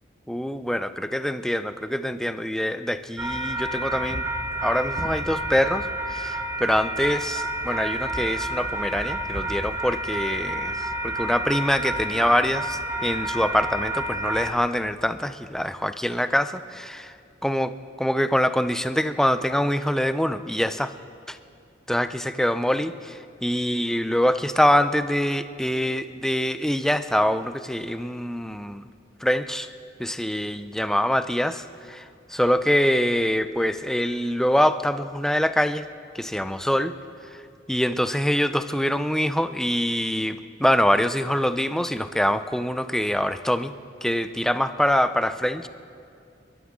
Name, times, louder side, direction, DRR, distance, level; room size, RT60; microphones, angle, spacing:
voice 1, 0.3-4.2 4.6-17.1 17.4-20.9 21.3-21.4 21.9-28.8 29.2-29.7 30.0-32.0 32.3-35.8 36.1-36.9 37.7-43.7 44.0-45.7, equal, 5° left, 11 dB, 0.4 m, -24 dB
sound 1, 3.2-14.5, right 1 dB, 15° right, 1.7 m, -29 dB
28.0 x 13.0 x 3.7 m, 2.4 s
head